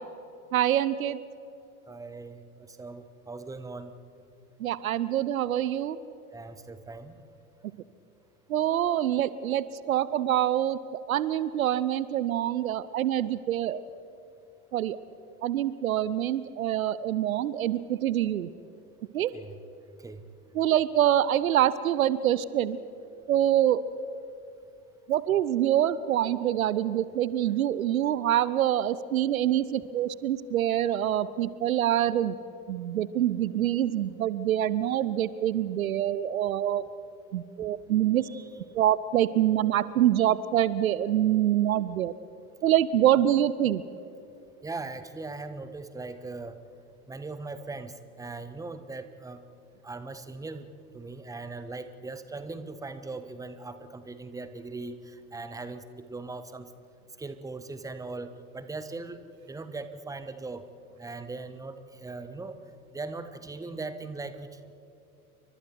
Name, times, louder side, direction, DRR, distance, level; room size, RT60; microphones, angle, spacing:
voice 1, 0.5-1.2 4.6-6.0 8.5-13.8 14.7-15.0 15.4-18.5 19.1-19.3 20.5-22.8 23.3-23.8 25.1-32.3 32.7-36.8 37.3-38.3 38.7-42.1 42.6-43.8, right 11 dB, 65° right, 17 dB, 0.8 m, -25 dB
voice 2, 1.9-3.9 6.3-7.2 19.3-19.6 20.0-20.2 37.6-37.7 38.2-38.5 44.6-46.6 47.1-49.4 49.8-50.7 50.9-56.7 57.2-59.2 59.5-60.6 61.0-62.6 62.9-64.7, right 3 dB, 5° right, 10 dB, 1.3 m, -39 dB
29.5 x 24.5 x 4.6 m, 2.8 s
figure-of-eight pair, 85°, 45 cm